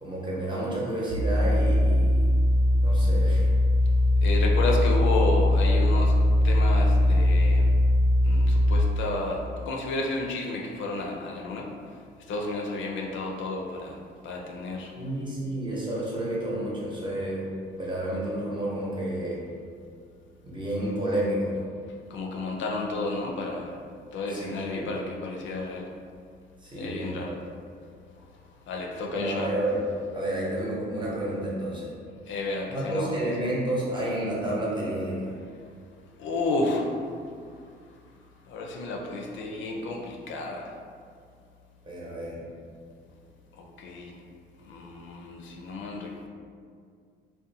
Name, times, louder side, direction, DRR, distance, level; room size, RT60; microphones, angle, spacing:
voice 1, 0.0-2.3 2.8-3.4 15.0-17.5 17.7-19.4 20.4-21.6 24.3-24.9 26.6-27.4 29.1-29.8 30.1-31.9 32.7-35.3 41.8-42.4, right 1 dB, 25° right, -6 dB, 0.8 m, -30 dB
sound 1, 1.1-8.8, left 1 dB, 75° right, 1.2 m, -21 dB
voice 2, 4.2-6.1 6.4-7.7 8.2-11.7 12.3-14.0 14.2-14.9 22.1-23.7 24.1-25.9 26.8-27.4 28.7-29.5 32.3-33.1 36.2-36.9 38.5-40.7 43.6-44.2 44.7-46.3, left 2 dB, 70° left, 0 dB, 0.4 m, -31 dB
2.5 x 2.2 x 2.6 m, 2.2 s
cardioid pair, 90°, 20 cm